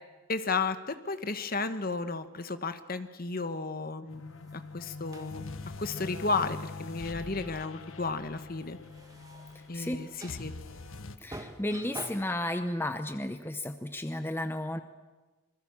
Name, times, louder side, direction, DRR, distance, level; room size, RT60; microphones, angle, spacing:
voice 1, 0.3-5.5 5.8-8.8 9.7-10.5, left 3 dB, 45° left, 10 dB, 1.2 m, -33 dB
sound 1, 4.0-11.2, left 3 dB, 70° left, 1.3 m, -43 dB
sound 2, 4.3-12.5, right 1 dB, 15° right, 1.9 m, -49 dB
voice 2, 11.2-14.8, left 1 dB, 10° left, 8 dB, 0.8 m, -33 dB
26.5 x 21.0 x 7.3 m, 1.2 s
head